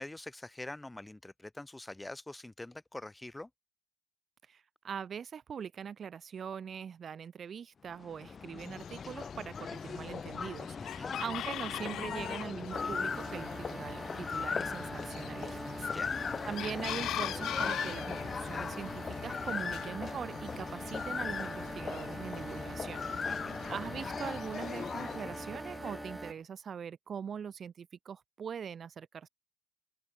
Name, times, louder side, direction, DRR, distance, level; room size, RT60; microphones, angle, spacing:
voice 1, 0.0-3.5 10.8-11.1 15.9-16.2 23.2-23.6, left 2 dB, 10° left, 4.3 m, -45 dB
voice 2, 4.5-15.9 16.4-23.1 23.7-29.3, right 7 dB, 35° right, 4.0 m, -42 dB
sound 1, 7.9-26.3, left 5 dB, 30° left, 1.0 m, -39 dB
Chicken rooster, 8.6-25.2, left 12 dB, 60° left, 3.1 m, -44 dB
sound 2, 12.7-26.3, right 2 dB, 15° right, 2.8 m, -44 dB
open air
cardioid pair, 110°, 0 cm